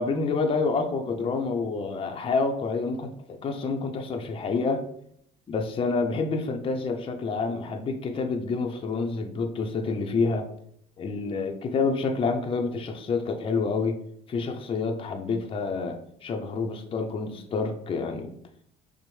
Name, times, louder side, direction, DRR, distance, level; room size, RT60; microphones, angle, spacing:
voice 1, 0.0-4.8 5.5-10.5 11.0-14.0 14.3-18.3, left 4 dB, 30° left, 4 dB, 0.5 m, -28 dB
5.9 x 2.0 x 3.1 m, 0.70 s
cardioid pair, 110°, 17 cm